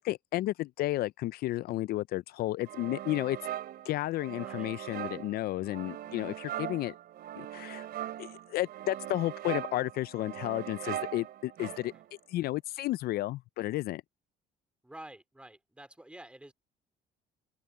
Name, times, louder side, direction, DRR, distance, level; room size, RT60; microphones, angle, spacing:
voice 1, 0.0-3.4 3.9-6.9 7.4-7.9 8.2-11.9 12.3-14.0, left 16 dB, 65° left, 0.4 m, -32 dB
sound 1, 2.7-12.2, right 12 dB, 65° right, 3.4 m, -40 dB
voice 2, 4.3-4.7 11.9-12.0 14.8-16.5, right 1 dB, 5° right, 2.9 m, -49 dB
open air
cardioid pair, 110°, 17 cm